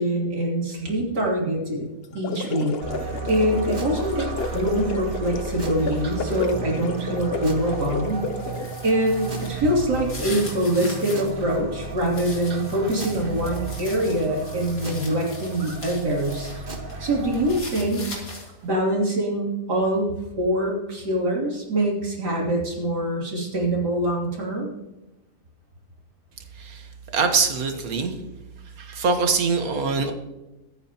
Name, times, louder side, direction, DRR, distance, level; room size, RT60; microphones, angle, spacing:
voice 1, 0.0-1.9 2.1-2.7 3.3-4.3 4.5-8.3 8.8-16.5 17.0-18.0 18.6-24.7, right 1 dB, 85° right, -3 dB, 3.6 m, -24 dB
sound 1, 2.0-8.8, left 4 dB, 50° left, 0.8 m, -32 dB
sound 2, 2.8-17.6, right 4 dB, 35° right, 1.6 m, -34 dB
sound 3, 8.2-11.3 11.7-16.6 16.9-18.7, left 2 dB, 75° left, 3.5 m, -40 dB
voice 2, 26.6-28.2 28.8-30.1, right 4 dB, 60° right, 5 dB, 1.8 m, -24 dB
23.0 x 9.1 x 3.0 m, 0.99 s
omnidirectional pair, 1.7 m